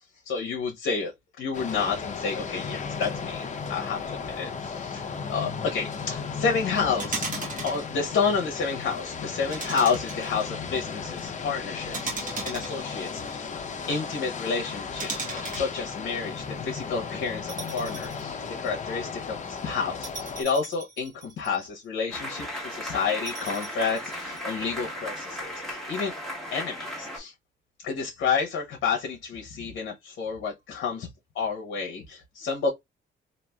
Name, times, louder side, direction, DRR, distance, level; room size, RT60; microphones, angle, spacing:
voice 1, 0.3-1.1 1.4-13.5 13.9-26.1 26.5-27.3 27.8-31.1 31.3-32.7, left 5 dB, 70° left, 0.8 m, -30 dB
sound 1, 1.5-20.4, left 5 dB, 40° left, 0.7 m, -35 dB
sound 2, 7.0-7.9 9.5-10.4 11.9-13.4 15.0-15.7 17.5-18.2 18.7-18.8 20.0-21.6 23.3-24.4, right 3 dB, 40° right, 1.2 m, -36 dB
sound 3, 22.1-27.2, equal, ahead, 1.2 m, -36 dB
3.1 x 2.5 x 2.2 m
cardioid pair, 90°, 20 cm